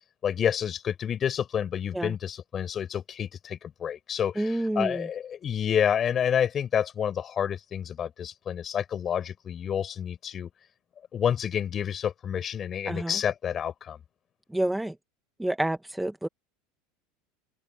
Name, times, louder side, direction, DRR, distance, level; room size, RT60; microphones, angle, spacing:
voice 1, 0.2-10.5 11.1-14.0, left 8 dB, 35° left, 5.4 m, -29 dB
voice 2, 4.4-5.1 12.9-13.2 14.5-14.9 15.4-16.3, right 1 dB, 5° right, 1.4 m, -28 dB
open air
hypercardioid pair, 85°, 0 cm